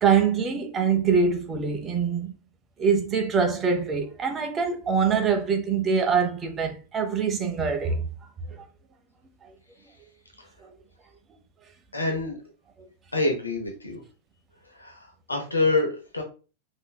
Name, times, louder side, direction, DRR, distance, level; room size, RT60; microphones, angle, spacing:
voice 1, 0.0-2.3 2.8-8.0 8.5-8.6 10.6-10.7, right 6 dB, 25° right, 0.8 m, -24 dB
voice 2, 11.9-12.4 13.1-14.0 14.7-16.2, left 2 dB, 80° left, 0.8 m, -26 dB
5.3 x 3.0 x 2.2 m
figure-of-eight pair, 90°, 0 cm